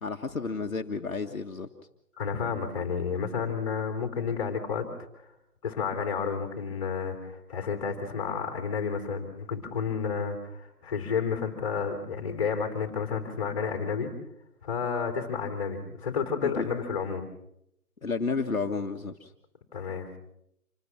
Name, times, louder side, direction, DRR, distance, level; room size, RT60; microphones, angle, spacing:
voice 1, 0.0-1.7 16.4-16.7 18.0-19.3, left 4 dB, 60° left, 4 dB, 1.7 m, -31 dB
voice 2, 2.2-4.9 5.6-14.1 14.6-17.3 19.7-20.1, left 6 dB, 20° left, 5 dB, 3.6 m, -31 dB
27.0 x 19.0 x 6.1 m, 0.80 s
figure-of-eight pair, 165°, 46 cm